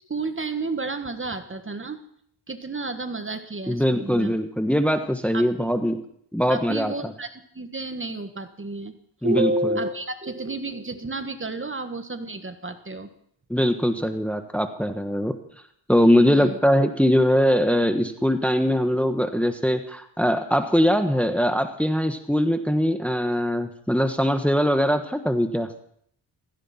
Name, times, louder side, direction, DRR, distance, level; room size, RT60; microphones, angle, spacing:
voice 1, 0.1-2.0 2.5-4.3 5.3-5.7 6.5-8.9 9.2-13.1 16.3-16.6, right 2 dB, 25° right, 8 dB, 1.6 m, -30 dB
voice 2, 3.7-6.0 6.3-7.1 9.2-9.7 13.5-15.3 15.9-25.7, equal, 5° left, 7 dB, 1.4 m, -22 dB
16.5 x 16.0 x 4.4 m, 0.66 s
cardioid pair, 70°, 46 cm